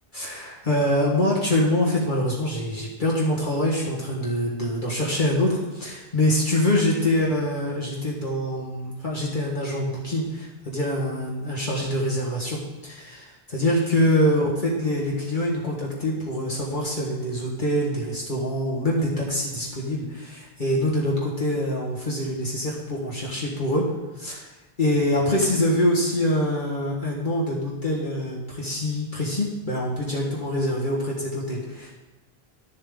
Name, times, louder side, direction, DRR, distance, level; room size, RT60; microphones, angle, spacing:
voice 1, 0.1-24.5 24.8-31.9, left 1 dB, 50° left, -5 dB, 1.6 m, -25 dB
11.5 x 7.0 x 3.7 m, 1.1 s
omnidirectional pair, 1.1 m